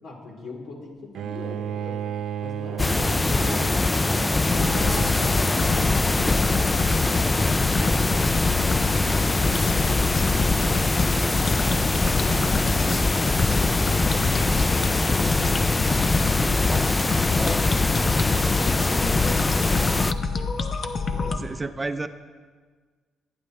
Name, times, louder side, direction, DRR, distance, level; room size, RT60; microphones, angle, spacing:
voice 1, 0.0-4.0 7.6-10.0 10.3-10.5 14.0-14.5 14.9-20.6 21.1-21.6, left 2 dB, 75° left, -2 dB, 3.6 m, -43 dB
Bowed string instrument, 1.1-6.2, right 9 dB, 70° right, 0.5 m, -34 dB
sound 1, 2.8-20.1, left 2 dB, 20° left, 0.4 m, -22 dB
sound 2, 4.5-21.4, left 4 dB, 50° left, 1.0 m, -27 dB
voice 2, 11.7-12.0 12.4-13.1 21.4-22.1, right 3 dB, 20° right, 10 dB, 0.6 m, -33 dB
23.0 x 9.2 x 3.3 m, 1.5 s
cardioid pair, 90°, 0 cm